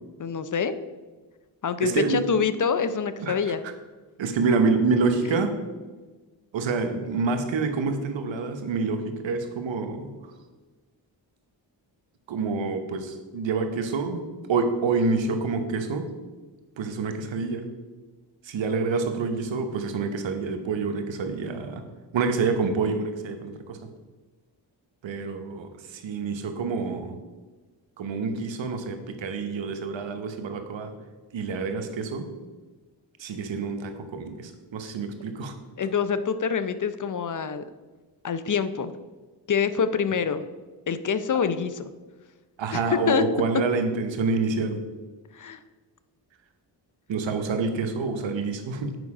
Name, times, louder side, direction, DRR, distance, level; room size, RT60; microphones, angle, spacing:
voice 1, 0.2-0.7 1.6-3.6 5.2-5.4 35.8-37.6 38.2-38.9 39.5-40.4 40.9-41.8 42.7-43.2 45.3-45.6, left 6 dB, 45° left, 12 dB, 0.6 m, -26 dB
voice 2, 1.8-2.2 3.2-3.4 3.6-3.7 4.2-5.5 6.5-10.1 12.3-16.1 16.8-17.7 18.4-21.8 22.1-23.9 25.0-27.2 28.0-30.9 31.3-32.3 33.2-35.5 42.6-44.8 47.1-49.0, right 4 dB, 80° right, 6 dB, 1.1 m, -27 dB
8.0 x 5.1 x 4.8 m, 1.3 s
cardioid pair, 65°, 45 cm